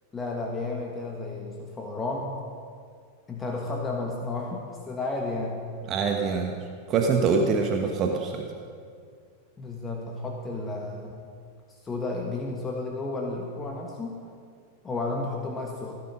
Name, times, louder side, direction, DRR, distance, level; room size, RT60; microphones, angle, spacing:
voice 1, 0.1-2.4 3.3-5.7 9.6-11.2 11.7-14.2 14.8-16.0, left 3 dB, 15° left, 0 dB, 1.5 m, -32 dB
voice 2, 5.9-8.5, right 5 dB, 30° right, 2 dB, 1.2 m, -25 dB
16.0 x 10.5 x 5.5 m, 2.2 s
figure-of-eight pair, 90°, 0 cm